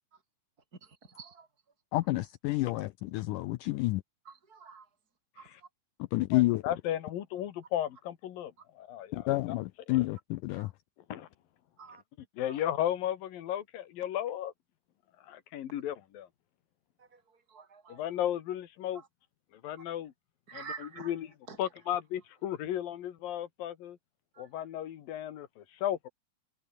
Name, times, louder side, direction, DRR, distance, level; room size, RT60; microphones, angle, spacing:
voice 1, 0.8-1.5 4.3-4.9 5.4-5.5 10.6-10.7 11.8-12.0 12.5-12.6 17.0-17.2 17.5-18.0 18.9-19.1 20.5-21.1 21.5-21.6 24.3-24.6, right 5 dB, 25° right, 5.8 m, -48 dB
voice 2, 1.9-4.0 6.0-6.6 9.1-10.7, left 19 dB, 90° left, 1.8 m, -29 dB
voice 3, 6.3-9.3 9.9-10.0 11.1-11.3 12.3-14.5 15.2-16.3 17.9-19.0 19.6-20.1 20.5-21.3 21.6-24.0 24.4-26.1, left 11 dB, 70° left, 3.4 m, -35 dB
omnidirectional pair, 4.3 m